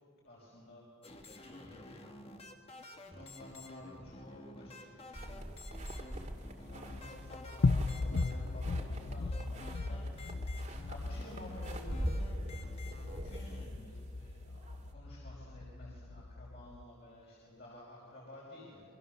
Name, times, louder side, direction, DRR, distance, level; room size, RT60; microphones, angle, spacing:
voice 1, 0.2-2.0 3.0-5.5 6.6-10.0 10.5-12.1 12.6-12.7 13.2-18.8, left 1 dB, 45° left, -5 dB, 5.7 m, -52 dB
sound 1, 1.0-13.7, left 1 dB, 25° left, 1.7 m, -51 dB
sound 2, 5.1-14.9, equal, 35° right, 2.2 m, -44 dB
sound 3, 6.7-16.8, left 3 dB, 65° left, 0.6 m, -37 dB
28.0 x 23.5 x 6.8 m, 2.4 s
head